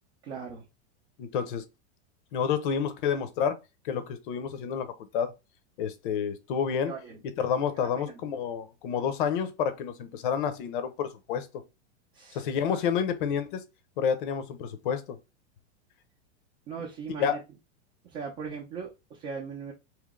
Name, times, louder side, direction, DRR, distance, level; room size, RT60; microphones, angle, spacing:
voice 1, 0.2-0.6 6.9-7.2 7.8-8.0 12.1-12.8 16.7-17.4 18.0-19.7, right 5 dB, 25° right, 0.7 m, -39 dB
voice 2, 1.2-1.6 2.3-3.6 3.8-5.3 5.8-6.9 7.4-11.5 12.3-13.6 14.0-15.2 17.2-17.4, left 7 dB, 45° left, 0.7 m, -29 dB
3.2 x 3.0 x 3.6 m
supercardioid pair, 170°, 36 cm